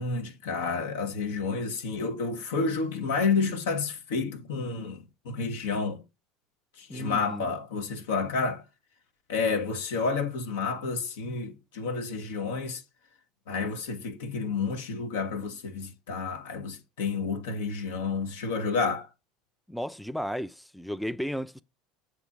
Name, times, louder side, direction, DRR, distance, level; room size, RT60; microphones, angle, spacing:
voice 1, 0.0-6.0 6.8-8.6 9.3-12.8 13.5-19.1, left 4 dB, 70° left, 1.3 m, -30 dB
voice 2, 6.9-7.5 19.7-21.6, equal, ahead, 0.5 m, -34 dB
7.9 x 3.1 x 5.9 m
hypercardioid pair, 75°, 0 cm